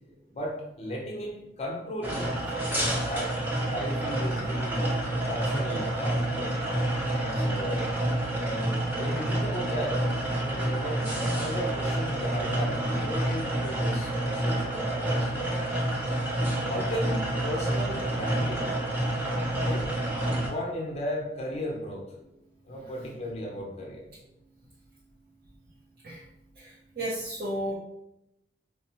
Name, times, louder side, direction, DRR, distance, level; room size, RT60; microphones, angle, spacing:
voice 1, 0.3-2.4 2.6-3.3 3.7-6.8 7.2-7.9 8.4-10.0 10.4-15.3 16.7-18.8 19.6-20.1 20.4-22.1 22.6-24.0, equal, 35° left, -1 dB, 0.7 m, -35 dB
sound 1, 2.0-20.5, right 1 dB, 10° right, 0.7 m, -28 dB
voice 2, 26.6-27.7, right 1 dB, 55° right, -5 dB, 0.6 m, -33 dB
4.5 x 2.0 x 2.8 m, 0.84 s
head